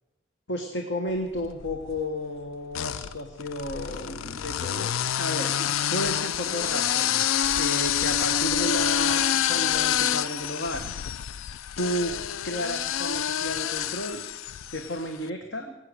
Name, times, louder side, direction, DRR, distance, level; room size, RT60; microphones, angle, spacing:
voice 1, 0.5-4.9 5.2-10.9 11.8-12.2 12.4-14.2 14.7-15.7, equal, 60° left, 4 dB, 1.2 m, -32 dB
sound 1, 1.3-2.0 2.7-15.0, left 10 dB, 85° left, 0.4 m, -27 dB
18.0 x 8.8 x 6.4 m, 1.0 s
head